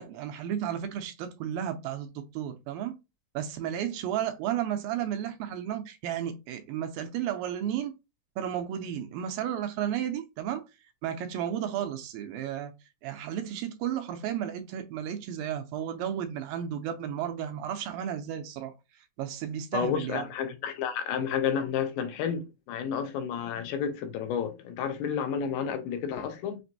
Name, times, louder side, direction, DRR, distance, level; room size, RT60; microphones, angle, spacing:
voice 1, 0.0-3.0 3.3-7.9 8.4-10.6 11.0-12.7 13.0-18.7 19.2-20.2, right 10 dB, 80° right, 2.3 m, -33 dB
voice 2, 19.7-26.6, left 7 dB, 80° left, 2.2 m, -31 dB
6.0 x 2.5 x 2.7 m
omnidirectional pair, 4.3 m